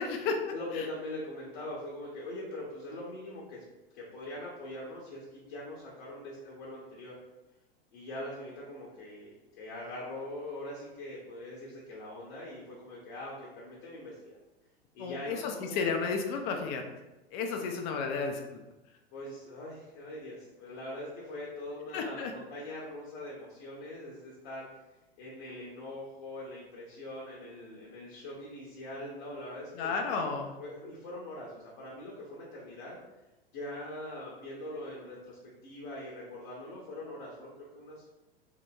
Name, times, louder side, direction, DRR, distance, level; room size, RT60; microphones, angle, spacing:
voice 1, 0.0-0.4 0.7-0.9 15.0-16.8 17.3-18.6 21.9-22.3 29.7-30.5, left 5 dB, 35° left, 4 dB, 0.4 m, -32 dB
voice 2, 0.5-3.6 3.9-7.1 7.9-14.4 14.9-15.8 19.1-24.7 25.2-30.3 30.6-33.0 33.5-38.2, left 1 dB, 50° left, -4 dB, 0.8 m, -42 dB
2.8 x 2.7 x 2.2 m, 1.0 s
figure-of-eight pair, 90°, 30 cm